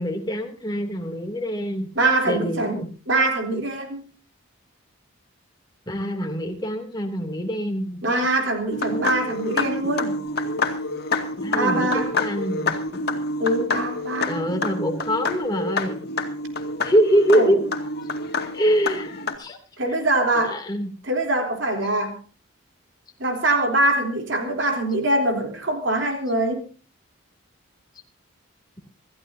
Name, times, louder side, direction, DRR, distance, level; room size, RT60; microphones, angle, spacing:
voice 1, 0.0-1.9 2.3-2.9 5.9-8.0 11.4-12.8 14.2-16.0 16.8-17.6 18.5-19.1 19.4-19.6 20.5-20.9, equal, 20° left, 3 dB, 2.9 m, -24 dB
voice 2, 2.0-2.8 3.1-4.0 8.0-10.2 11.5-12.1 13.4-14.5 17.3-17.6 19.8-20.6 21.0-22.2 23.2-26.6, right 2 dB, 60° right, 3 dB, 3.6 m, -23 dB
sound 1, 8.7-19.4, left 2 dB, 45° left, 2.3 m, -27 dB
26.5 x 14.5 x 2.8 m, 0.35 s
head